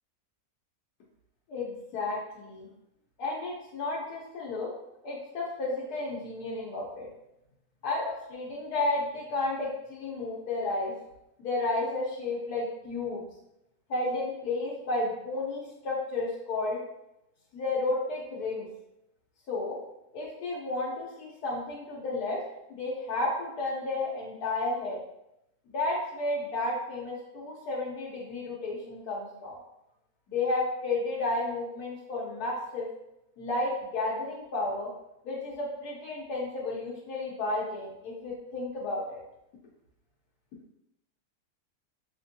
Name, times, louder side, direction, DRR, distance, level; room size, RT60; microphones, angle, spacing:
voice 1, 1.5-2.7 3.2-4.7 5.0-7.1 7.8-10.9 11.4-13.2 13.9-16.8 17.5-18.7 19.5-19.8 20.1-22.4 22.7-25.0 25.7-29.6 30.3-32.9 33.4-34.9 35.2-39.2, left 2 dB, 90° left, -5 dB, 1.3 m, -32 dB
5.2 x 2.5 x 2.6 m, 0.85 s
omnidirectional pair, 1.6 m